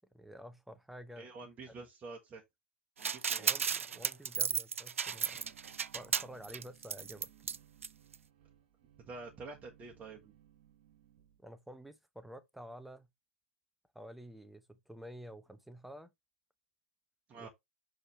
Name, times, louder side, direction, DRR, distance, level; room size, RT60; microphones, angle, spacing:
voice 1, 0.1-1.3 3.4-5.4 5.9-7.3 11.4-13.1 13.9-16.1 17.3-17.5, equal, ahead, 0.8 m, -50 dB
voice 2, 1.2-2.4 3.0-3.5 5.3-5.5 9.1-10.3 17.3-17.5, right 3 dB, 20° right, 1.4 m, -48 dB
sound 1, 3.0-7.6 7.8-7.9 8.1-8.2, right 7 dB, 80° right, 0.4 m, -34 dB
sound 2, 5.0-11.4, right 11 dB, 50° right, 1.2 m, -63 dB
6.4 x 4.8 x 3.3 m
hypercardioid pair, 110°, 7 cm